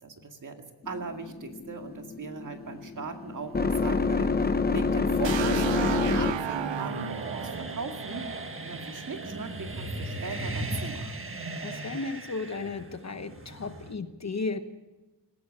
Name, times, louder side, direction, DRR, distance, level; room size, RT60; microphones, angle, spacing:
voice 1, 0.0-8.3 8.6-11.2, right 4 dB, 45° right, 4 dB, 2.2 m, -39 dB
sound 1, 0.8-6.7, left 4 dB, 20° left, 0.7 m, -28 dB
sound 2, 2.8-13.9, right 2 dB, 30° right, 1.6 m, -38 dB
sound 3, 5.2-9.1, right 9 dB, 85° right, 0.9 m, -34 dB
voice 2, 11.6-14.6, left 3 dB, 40° left, 9 dB, 1.1 m, -34 dB
19.5 x 16.5 x 8.7 m, 1.1 s
wide cardioid pair, 180°, 43 cm